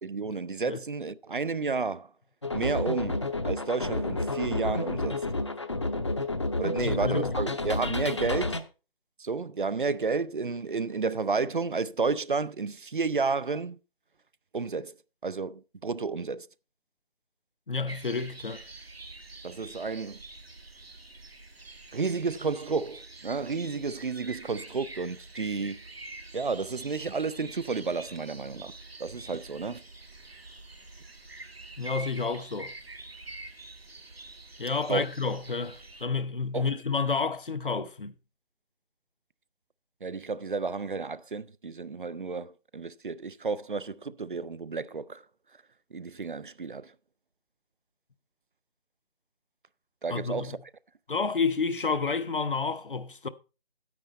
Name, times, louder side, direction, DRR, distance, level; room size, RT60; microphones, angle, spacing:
voice 1, 0.0-2.1 2.5-5.1 6.6-8.6 9.2-13.8 14.5-15.0 15.2-16.5 19.4-20.2 21.9-25.8 26.3-28.7 29.0-29.8 34.9-35.1 36.5-36.7 40.0-45.2 45.9-46.9 50.0-50.6, right 4 dB, 55° right, 0.5 m, -31 dB
sound 1, 2.4-8.6, left 2 dB, 30° left, 0.7 m, -30 dB
voice 2, 6.8-7.4 17.7-18.6 31.8-32.7 34.6-38.1 50.1-50.6 51.1-53.3, left 4 dB, 60° left, 0.8 m, -30 dB
sound 2, 17.9-36.1, right 2 dB, 75° right, 1.5 m, -46 dB
9.5 x 9.2 x 4.1 m
figure-of-eight pair, 155°, 30 cm